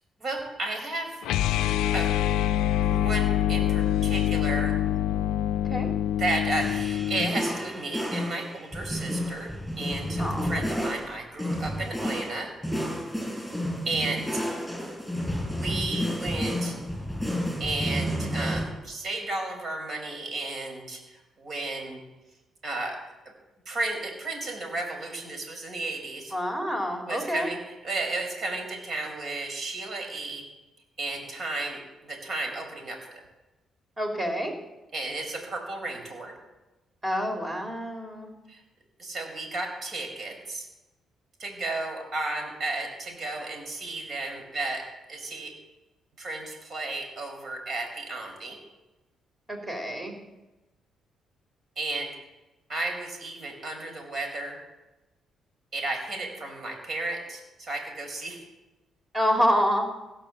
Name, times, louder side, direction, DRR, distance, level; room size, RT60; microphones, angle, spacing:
voice 1, 0.2-1.2 1.9-2.1 2.8-4.7 6.2-9.5 9.8-12.5 13.8-14.4 15.5-16.7 17.6-22.0 22.6-23.0 23.7-26.3 27.1-30.4 31.0-33.2 34.9-36.3 38.5-38.6 39.0-40.7 41.4-45.5 46.2-48.6 51.8-52.1 52.7-54.6 55.7-58.4, right 2 dB, 50° right, 3 dB, 4.7 m, -33 dB
sound 1, 1.2-7.3, left 11 dB, 90° left, 0.4 m, -25 dB
sound 2, 6.6-18.7, equal, ahead, 7.1 m, -31 dB
voice 2, 10.2-10.9 26.3-27.5 34.0-34.5 37.0-38.3 49.5-50.1 59.1-59.9, equal, 20° right, 3 dB, 3.3 m, -27 dB
16.5 x 9.0 x 7.6 m, 1.0 s
cardioid pair, 90°, 0 cm